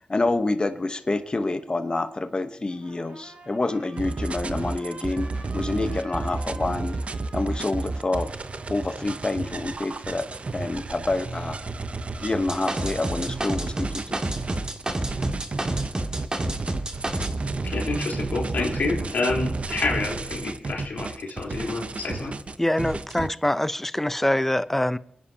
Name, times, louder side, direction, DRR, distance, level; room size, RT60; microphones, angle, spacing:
voice 1, 0.0-5.3 5.5-7.0 7.3-8.3 8.7-10.2 10.5-11.6 12.2-14.0, left 2 dB, 35° left, 1.0 m, -27 dB
Trumpet, 2.7-9.4, right 2 dB, 75° right, 2.7 m, -48 dB
sound 1, 4.0-23.3, right 3 dB, 50° right, 0.7 m, -32 dB
sound 2, 12.5-17.3, right 1 dB, 30° right, 1.9 m, -28 dB
voice 2, 17.6-22.3, left 3 dB, 80° left, 3.6 m, -28 dB
voice 3, 22.6-25.0, left 1 dB, 10° left, 0.6 m, -24 dB
28.5 x 10.0 x 2.8 m
wide cardioid pair, 75°, 3 cm